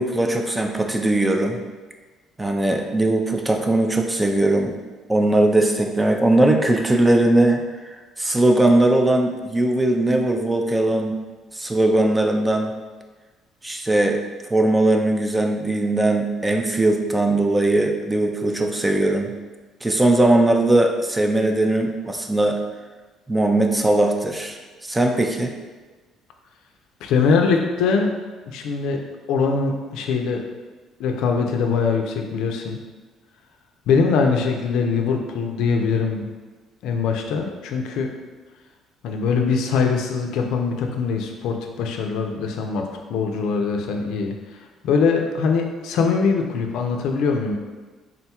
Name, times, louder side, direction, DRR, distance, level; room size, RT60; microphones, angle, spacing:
voice 1, 0.0-1.6 2.4-4.8 5.1-7.6 8.2-11.2 11.5-12.7 13.6-14.2 14.5-19.4 19.8-22.6 23.3-25.5, right 1 dB, 10° right, 3 dB, 0.4 m, -19 dB
voice 2, 27.0-28.1 28.5-29.0 29.3-30.4 31.0-32.8 33.9-36.3 36.8-38.1 39.0-44.3 44.8-47.5, left 5 dB, 80° left, 3 dB, 0.4 m, -22 dB
3.7 x 2.3 x 4.3 m, 1.3 s
cardioid pair, 120°, 0 cm